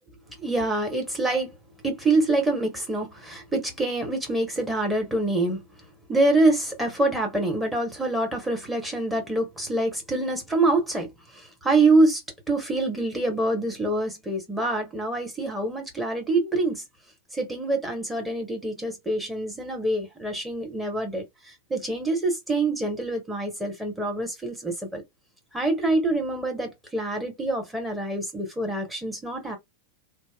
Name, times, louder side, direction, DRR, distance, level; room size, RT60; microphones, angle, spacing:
voice 1, 0.4-1.5 1.8-5.6 6.1-12.2 12.5-16.8 17.3-21.2 21.7-25.0 25.5-29.6, right 2 dB, 5° right, 1.0 m, -25 dB
2.8 x 2.0 x 2.2 m
figure-of-eight pair, 90°, 0 cm